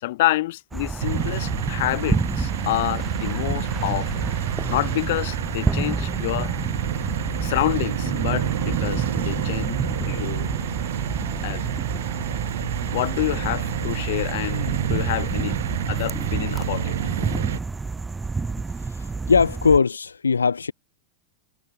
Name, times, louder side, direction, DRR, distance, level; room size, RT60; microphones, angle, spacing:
voice 1, 0.0-4.2 4.7-6.5 7.4-9.8 10.1-10.5 11.4-11.8 12.9-17.0, left 17 dB, 55° left, 0.8 m, -28 dB
sound 1, 0.7-19.8, right 4 dB, 10° right, 0.4 m, -29 dB
sound 2, 1.0-17.6, right 10 dB, 60° right, 0.8 m, -29 dB
voice 2, 18.8-20.7, left 5 dB, 75° left, 1.0 m, -20 dB
figure-of-eight pair, 90°, 0 cm